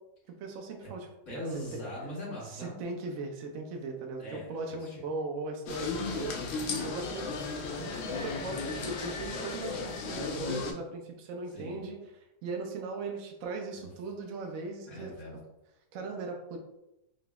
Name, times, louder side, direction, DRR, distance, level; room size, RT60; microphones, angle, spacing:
voice 1, 0.4-1.1 1.3-1.4 2.5-6.4 6.8-7.3 7.8-12.0 12.4-15.1 15.9-16.6, right 3 dB, 65° right, 2 dB, 0.9 m, -38 dB
voice 2, 1.3-2.8 4.2-5.0 11.5-11.9 14.9-15.4, equal, 50° left, -14 dB, 1.8 m, -41 dB
sound 1, 5.7-10.7, left 4 dB, 85° left, 0.5 m, -35 dB
4.0 x 2.9 x 2.2 m, 0.90 s
omnidirectional pair, 1.7 m